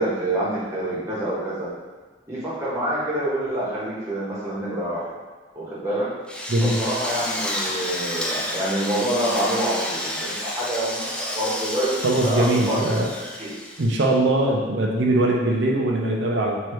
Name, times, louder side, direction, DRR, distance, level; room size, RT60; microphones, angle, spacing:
voice 1, 0.0-1.7 2.3-5.0 5.5-6.1 6.6-12.9 13.4-13.5, right 1 dB, 15° right, -9 dB, 1.2 m, -26 dB
Drill, 6.3-14.1, left 1 dB, 5° left, 0.3 m, -30 dB
voice 2, 6.5-6.8 12.0-13.1 13.8-16.6, right 1 dB, 85° right, -1 dB, 0.5 m, -21 dB
3.1 x 2.7 x 4.5 m, 1.4 s
head